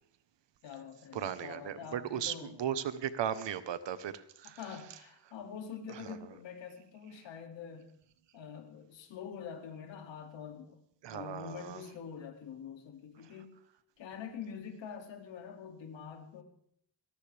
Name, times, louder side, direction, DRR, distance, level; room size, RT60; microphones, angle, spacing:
voice 1, 0.6-2.5 4.6-7.9 8.3-10.7 11.1-13.6 14.0-16.4, left 7 dB, 85° left, 4 dB, 2.5 m, -45 dB
voice 2, 1.1-4.8 5.9-6.2 11.0-11.9 13.2-13.3, right 9 dB, 75° right, 13 dB, 1.1 m, -37 dB
21.0 x 18.5 x 3.4 m, 0.68 s
cardioid pair, 110°, 44 cm